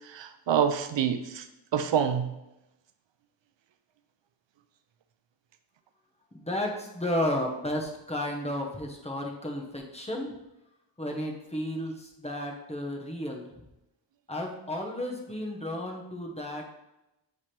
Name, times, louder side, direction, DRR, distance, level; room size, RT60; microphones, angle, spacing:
voice 1, 0.0-1.4 1.7-2.3, right 8 dB, 70° right, 9 dB, 0.5 m, -27 dB
voice 2, 6.3-10.3 11.0-13.5 14.3-16.6, left 1 dB, 15° left, 0 dB, 1.1 m, -33 dB
7.1 x 3.3 x 4.4 m, 0.93 s
wide cardioid pair, 95°, 46 cm